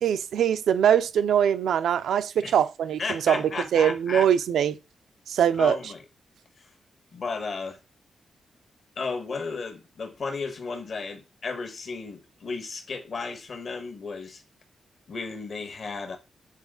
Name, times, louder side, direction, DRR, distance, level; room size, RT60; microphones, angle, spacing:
voice 1, 0.0-3.4 3.7-4.8 5.3-5.8, right 9 dB, 90° right, 0.5 m, -22 dB
voice 2, 3.0-4.3 5.6-6.0 6.6-6.7 7.1-7.8 8.9-14.4 15.1-16.2, left 4 dB, 55° left, 1.5 m, -34 dB
7.3 x 4.2 x 3.8 m
cardioid pair, 95°, 0 cm